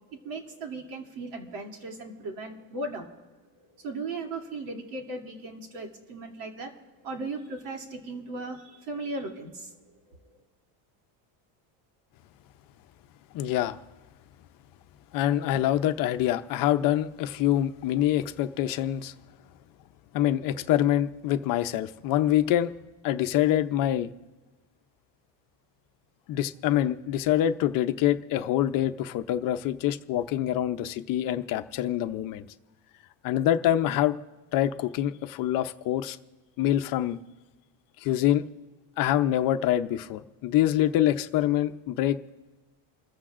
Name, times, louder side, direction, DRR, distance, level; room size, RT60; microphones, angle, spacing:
voice 1, 0.0-3.3 3.6-6.7 7.0-9.7 10.1-10.2, right 2 dB, 75° right, 1 dB, 2.8 m, -37 dB
voice 2, 13.3-13.8 15.1-19.1 20.1-22.7 23.0-24.1 26.3-32.5 33.2-34.2 34.5-36.2 36.6-37.2 38.0-38.5 39.0-42.2, left 12 dB, 45° left, 9 dB, 0.6 m, -25 dB
29.0 x 14.5 x 2.5 m, 1.2 s
cardioid pair, 165°, 47 cm